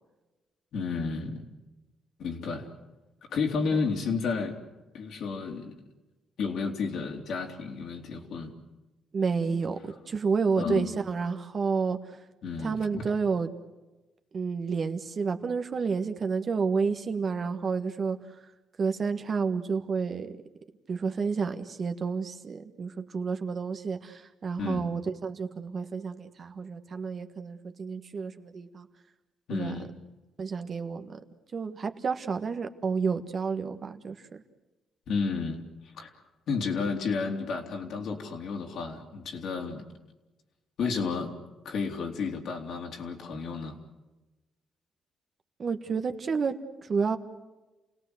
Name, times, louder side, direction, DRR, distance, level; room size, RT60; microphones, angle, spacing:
voice 1, 0.7-1.5 2.2-2.7 3.3-4.6 4.9-5.7 6.4-8.5 9.4-9.6 10.6-10.9 12.4-13.0 24.6-24.9 29.5-29.9 35.1-36.1 36.5-39.8 40.8-41.3 41.6-43.8 46.0-46.1, left 5 dB, 70° left, 2 dB, 3.1 m, -32 dB
voice 2, 9.1-12.2 12.6-13.5 14.3-18.4 18.8-20.3 20.9-28.9 29.5-29.7 30.4-31.2 31.5-34.4 45.6-47.2, right 5 dB, 45° right, 8 dB, 1.6 m, -30 dB
29.0 x 18.0 x 8.0 m, 1.1 s
cardioid pair, 90°, 0 cm